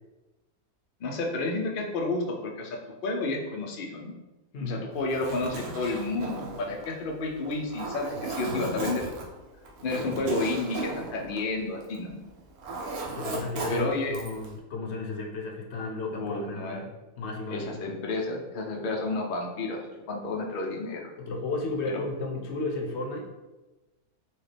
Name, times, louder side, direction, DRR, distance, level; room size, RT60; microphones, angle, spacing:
voice 1, 1.0-4.1 4.6-9.0 9.8-12.2 13.7-14.1 16.2-16.8 17.5-19.8 20.1-21.1 21.8-22.0, left 2 dB, 85° left, 0 dB, 0.4 m, -31 dB
voice 2, 4.5-4.9 9.9-10.3 13.2-16.9 17.2-17.9 21.2-23.3, left 3 dB, 60° left, 1 dB, 0.8 m, -33 dB
Zipper (clothing), 5.0-12.1 12.4-14.5, right 3 dB, 75° right, 1.2 m, -36 dB
4.3 x 2.3 x 3.3 m, 1.1 s
omnidirectional pair, 1.6 m